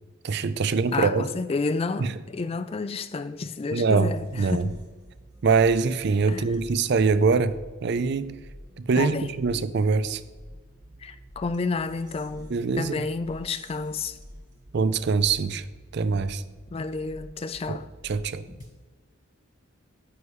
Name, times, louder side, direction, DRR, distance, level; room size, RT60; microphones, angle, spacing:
voice 1, 0.2-1.3 2.0-2.1 3.7-4.7 5.4-7.5 7.8-8.4 8.8-10.2 12.5-13.0 14.7-15.6 15.9-16.4 17.7-17.8 18.0-18.4, right 4 dB, 50° right, 0.4 m, -23 dB
voice 2, 0.9-4.8 6.3-6.5 9.0-9.3 11.0-14.2 16.7-17.9, left 4 dB, 25° left, 0.3 m, -30 dB
sound 1, 4.0-18.7, equal, 20° right, 1.6 m, -48 dB
9.7 x 9.5 x 3.2 m
head